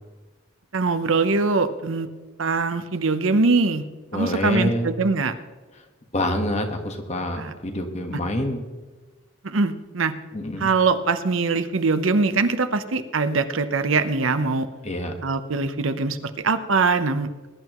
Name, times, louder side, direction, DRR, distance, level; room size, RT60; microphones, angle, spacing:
voice 1, 0.7-2.1 2.4-3.8 4.1-5.3 7.4-7.5 9.4-10.1 10.6-14.7 15.2-17.5, right 4 dB, 70° right, 10 dB, 0.8 m, -22 dB
voice 2, 4.1-4.9 6.1-8.6 10.3-10.7 14.8-15.1, left 1 dB, 30° left, 5 dB, 1.4 m, -26 dB
21.0 x 11.0 x 3.1 m, 1.3 s
head